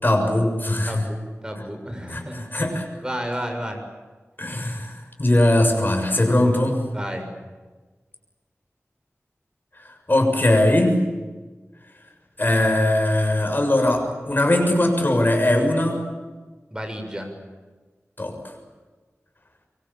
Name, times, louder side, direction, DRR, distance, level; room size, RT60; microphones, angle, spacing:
voice 1, 0.0-1.1 2.1-2.8 4.4-6.8 10.1-11.0 12.4-16.0 18.2-18.4, left 1 dB, 40° left, 4 dB, 6.9 m, -20 dB
voice 2, 0.9-3.8 6.9-7.3 16.7-17.3, equal, 15° right, 4 dB, 6.9 m, -32 dB
24.5 x 24.0 x 8.9 m, 1.3 s
wide cardioid pair, 65°, 5 cm